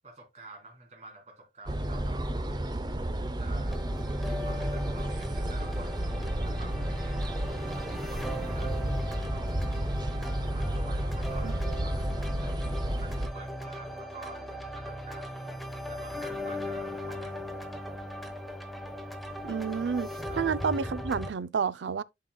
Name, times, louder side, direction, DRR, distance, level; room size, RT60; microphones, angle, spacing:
voice 1, 0.0-2.7 3.2-3.8 4.2-6.1 6.4-9.5 10.5-12.6 13.0-15.5 15.9-17.9 20.3-20.4, right 3 dB, 40° right, 3.3 m, -49 dB
sound 1, 1.7-13.3, right 1 dB, 25° right, 0.6 m, -32 dB
sound 2, 3.7-21.3, equal, ahead, 1.0 m, -38 dB
voice 2, 19.4-20.1 20.4-22.0, right 6 dB, 80° right, 0.4 m, -30 dB
11.0 x 5.6 x 2.2 m
head